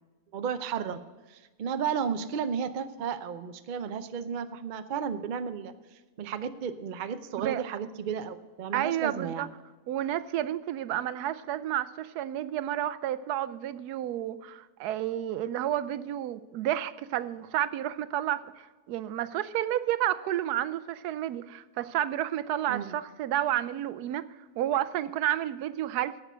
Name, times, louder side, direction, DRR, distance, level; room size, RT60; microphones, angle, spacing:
voice 1, 0.3-1.0 1.3-5.7 6.2-9.5 22.7-22.9, right 7 dB, 60° right, 10 dB, 0.5 m, -33 dB
voice 2, 8.7-9.5 9.9-24.2 24.6-26.2, right 12 dB, 90° right, 15 dB, 1.1 m, -31 dB
11.0 x 7.7 x 6.1 m, 1.3 s
omnidirectional pair, 1.6 m